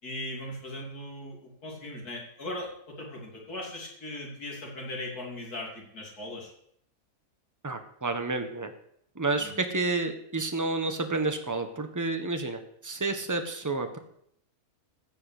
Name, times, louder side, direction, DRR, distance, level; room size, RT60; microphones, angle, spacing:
voice 1, 0.0-6.5 9.4-9.5, left 1 dB, 80° left, -1 dB, 3.5 m, -39 dB
voice 2, 7.6-8.7 9.1-14.0, right 3 dB, 15° right, 6 dB, 1.2 m, -30 dB
15.5 x 5.8 x 8.4 m, 0.69 s
omnidirectional pair, 1.6 m